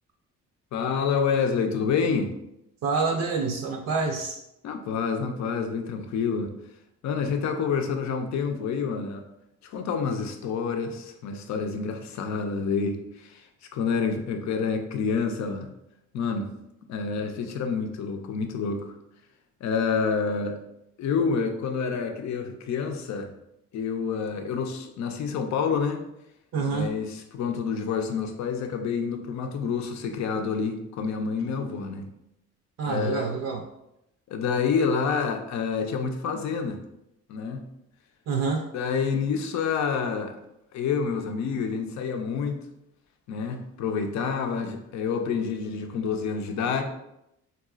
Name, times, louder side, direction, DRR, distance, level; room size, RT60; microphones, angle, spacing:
voice 1, 0.7-2.3 4.6-6.5 7.0-9.3 9.6-13.5 13.7-15.7 16.1-16.5 16.9-18.9 19.6-20.6 21.0-23.3 23.7-26.0 26.7-32.1 32.8-33.2 34.3-36.8 37.3-37.7 38.7-40.4 40.7-42.6 43.3-46.8, left 5 dB, 65° left, 5 dB, 0.5 m, -28 dB
voice 2, 2.8-4.4 26.5-26.9 32.8-33.6 38.3-38.7, right 4 dB, 60° right, 1 dB, 0.4 m, -27 dB
3.9 x 2.3 x 2.3 m, 0.84 s
cardioid pair, 90°, 30 cm